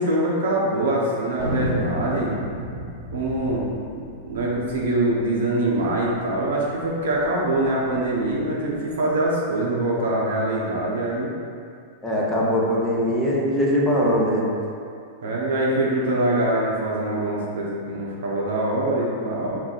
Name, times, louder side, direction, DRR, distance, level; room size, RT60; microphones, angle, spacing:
voice 1, 0.0-2.3 3.1-11.3 15.2-19.6, right 1 dB, 75° right, -4 dB, 0.9 m, -24 dB
Thunder, 1.4-6.2 6.5-6.6 6.8-7.3 7.8-9.0, equal, 20° right, 1.4 m, -32 dB
voice 2, 12.0-14.4, equal, 10° left, -5 dB, 0.7 m, -21 dB
4.5 x 2.1 x 3.9 m, 2.4 s
hypercardioid pair, 125°, 0 cm